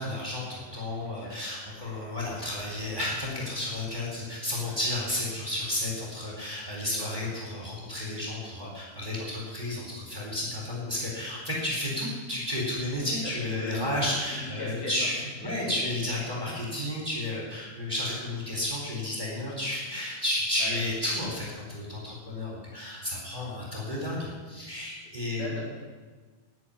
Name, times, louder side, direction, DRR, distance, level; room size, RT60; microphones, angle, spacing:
voice 1, 0.0-25.6, left 1 dB, 15° right, -4 dB, 3.4 m, -32 dB
voice 2, 13.5-14.1 14.6-15.1 15.4-15.9 20.6-20.9 25.3-25.6, left 1 dB, 80° left, -4 dB, 5.7 m, -38 dB
10.5 x 9.2 x 9.9 m, 1.4 s
omnidirectional pair, 4.3 m